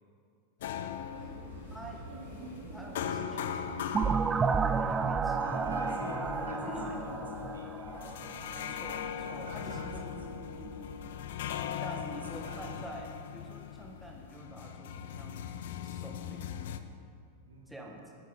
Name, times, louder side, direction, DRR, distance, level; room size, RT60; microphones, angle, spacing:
sound 1, 0.6-16.8, left 9 dB, 55° left, 0.6 m, -40 dB
sound 2, 1.1-11.4, right 2 dB, 50° right, 3.1 m, -48 dB
voice 1, 1.7-2.0 2.6-3.8 4.4-5.8 6.3-7.0 8.5-10.0 11.8-15.4 15.8-16.5 17.7-18.2, right 1 dB, ahead, -1 dB, 1.6 m, -47 dB
sound 3, 3.9-8.6, right 5 dB, 20° right, 0.4 m, -31 dB
voice 2, 5.4-10.5 11.9-12.7 17.5-17.8, right 3 dB, 70° right, 3 dB, 1.5 m, -49 dB
11.0 x 9.5 x 5.5 m, 2.5 s
figure-of-eight pair, 90°, 0 cm